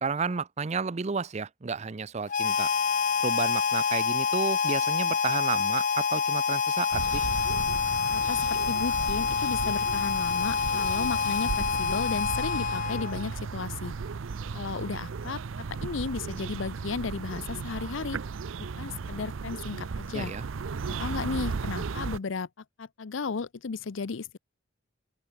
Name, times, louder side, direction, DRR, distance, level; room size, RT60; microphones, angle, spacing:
voice 1, 0.0-2.7 3.2-7.2 20.1-20.5, right 5 dB, 35° right, 0.5 m, -32 dB
Harmonica, 2.3-13.3, left 6 dB, 40° left, 0.8 m, -27 dB
sound 1, 6.9-22.2, right 5 dB, 80° right, 0.5 m, -35 dB
voice 2, 8.1-13.9 14.5-15.4 15.8-18.2 18.6-20.3 20.9-22.5 22.8-24.4, left 4 dB, 75° left, 0.6 m, -34 dB
open air
head